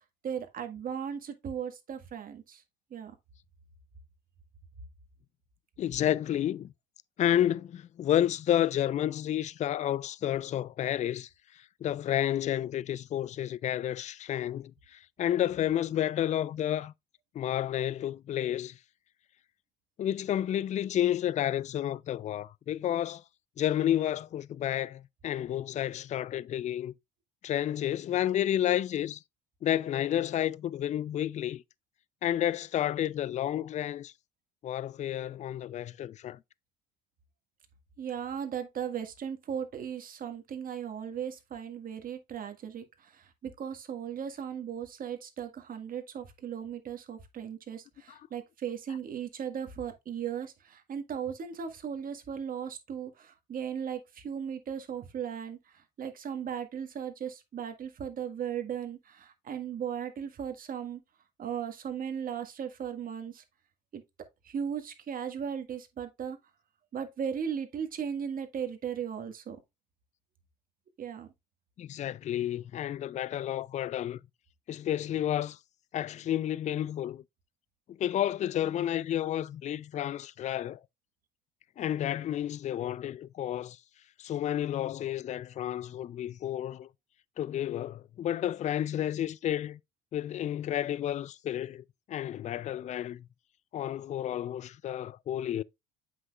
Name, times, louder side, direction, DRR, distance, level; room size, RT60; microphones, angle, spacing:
voice 1, 0.2-2.6 2.9-3.1 38.0-42.8 43.1-55.6 56.0-61.0 61.4-63.4 63.9-64.0 64.4-66.4 66.9-69.6 71.0-71.3, right 8 dB, 45° right, 1.7 m, -37 dB
voice 2, 5.8-6.7 7.2-11.3 11.6-16.9 17.3-18.8 20.0-23.2 23.6-26.9 27.4-29.2 29.6-31.6 32.2-34.1 34.6-36.4 48.1-48.2 71.8-74.2 74.7-75.6 75.9-77.2 77.9-80.8 81.8-83.8 84.2-86.9 87.4-89.8 90.1-93.2 93.7-95.6, left 11 dB, 35° left, 0.4 m, -31 dB
7.8 x 6.0 x 2.4 m
supercardioid pair, 75°, 21 cm